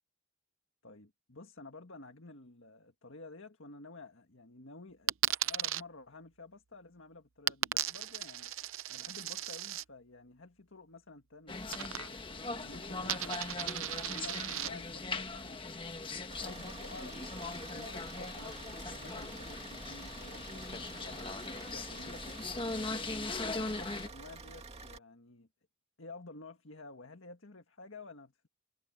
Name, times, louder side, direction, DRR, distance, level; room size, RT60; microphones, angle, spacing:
voice 1, 0.8-5.1 5.4-8.5 8.9-11.6 12.3-16.0 16.4-17.2 17.7-21.3 21.7-23.0 23.4-25.5 26.0-28.5, left 3 dB, 60° left, 1.9 m, -52 dB
Coin (dropping), 5.1-5.8 7.5-9.8 11.7-12.3 12.6-14.7, right 12 dB, 65° right, 0.7 m, -36 dB
sound 1, 11.5-24.1, left 3 dB, 25° left, 1.3 m, -40 dB
Car / Idling, 16.3-25.0, right 3 dB, 30° right, 2.3 m, -49 dB
head